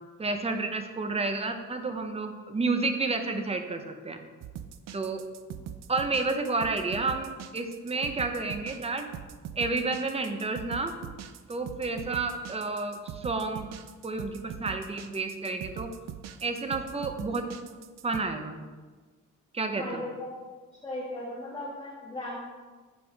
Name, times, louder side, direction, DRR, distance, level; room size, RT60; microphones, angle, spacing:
voice 1, 0.2-4.2 4.9-5.2 5.9-9.1 9.5-11.0 11.5-13.7 14.0-15.9 16.4-17.5 18.0-18.6 19.5-20.0, right 3 dB, 20° right, 6 dB, 0.8 m, -30 dB
sound 1, 4.4-18.2, right 9 dB, 60° right, 0.5 m, -42 dB
voice 2, 19.7-20.4 20.8-22.5, left 1 dB, 15° left, -8 dB, 1.9 m, -37 dB
8.3 x 5.0 x 3.5 m, 1.4 s
cardioid pair, 90°, 30 cm